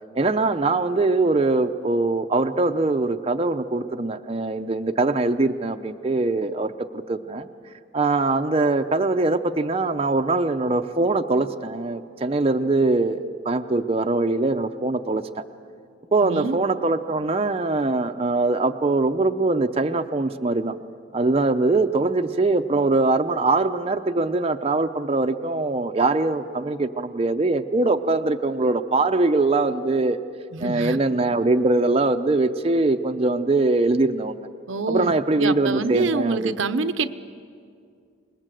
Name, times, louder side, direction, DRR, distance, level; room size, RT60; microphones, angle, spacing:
voice 1, 0.2-7.5 7.9-15.2 16.1-20.7 21.1-30.2 30.6-34.5 34.9-36.6, right 2 dB, 30° right, 6 dB, 0.6 m, -22 dB
voice 2, 16.2-16.6 30.5-31.0 34.7-37.1, right 3 dB, 85° right, 11 dB, 0.8 m, -26 dB
27.0 x 20.5 x 7.7 m, 2.2 s
head